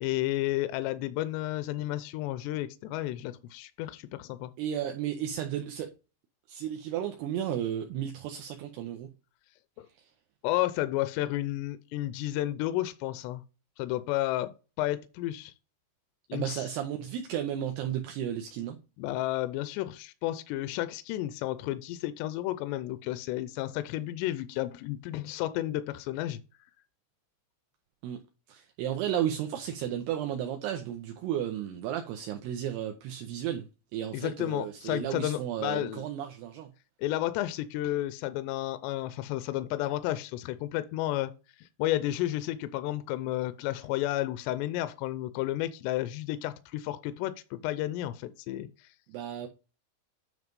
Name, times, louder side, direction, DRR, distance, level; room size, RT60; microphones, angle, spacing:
voice 1, 0.0-4.5 9.8-9.9 10.4-13.4 13.8-14.5 14.8-15.5 16.3-16.7 19.0-26.4 34.1-36.0 37.0-41.3 41.6-48.7, left 15 dB, 80° left, 2.6 m, -32 dB
voice 2, 4.6-5.9 6.5-9.1 16.3-18.8 28.0-28.2 28.5-33.7 33.9-36.7 49.1-49.5, right 10 dB, 75° right, 2.6 m, -33 dB
9.4 x 3.2 x 5.2 m
omnidirectional pair, 5.2 m